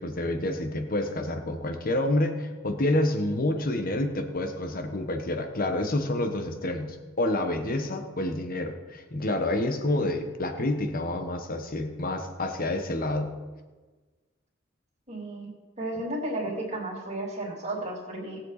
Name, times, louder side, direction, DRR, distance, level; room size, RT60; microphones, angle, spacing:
voice 1, 0.0-13.3, left 1 dB, 45° left, 6 dB, 1.3 m, -28 dB
voice 2, 15.1-15.5 15.8-18.4, right 1 dB, 35° right, -3 dB, 3.2 m, -33 dB
18.5 x 7.8 x 4.2 m, 1.3 s
head